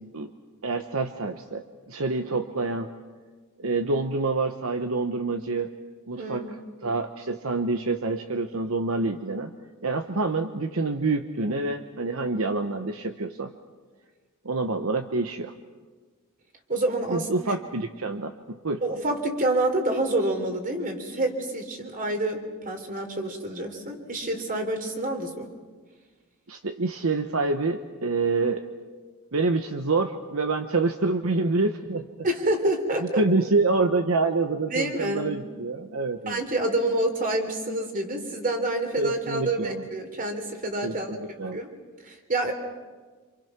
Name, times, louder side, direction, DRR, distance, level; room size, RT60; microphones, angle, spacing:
voice 1, 0.6-2.9 3.6-5.7 6.1-6.4 6.8-9.5 9.8-13.5 14.4-15.5 17.1-18.8 26.5-28.6 29.3-32.1 33.0-36.4 39.0-39.8 40.8-41.6, right 3 dB, 70° right, 7 dB, 1.1 m, -27 dB
voice 2, 6.1-6.5 16.7-17.3 18.8-25.5 32.2-33.2 34.7-35.3 36.3-41.1 41.5-41.7 42.0-42.5, right 1 dB, 40° right, 4 dB, 3.4 m, -27 dB
27.5 x 27.0 x 6.0 m, 1.4 s
head